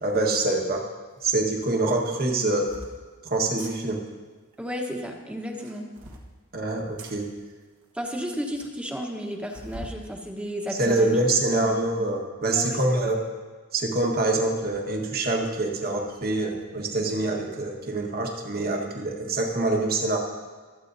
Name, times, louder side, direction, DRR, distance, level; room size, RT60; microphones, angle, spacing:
voice 1, 0.0-0.9 1.2-2.7 3.2-4.0 6.5-7.3 10.8-13.2 13.7-20.2, right 2 dB, 45° right, 1 dB, 1.5 m, -25 dB
sound 1, 1.2-1.3 2.2-2.9 3.5-3.8 5.4-6.3 7.0-7.2 7.8-7.9 8.1-8.2 8.5-8.6 9.5-10.0 10.5-11.4, right 1 dB, 65° right, 1.3 m, -43 dB
voice 2, 4.6-5.9 7.9-11.2 11.6-11.8 12.5-12.8, equal, 5° right, 2 dB, 1.1 m, -33 dB
25.0 x 8.3 x 2.7 m, 1.4 s
head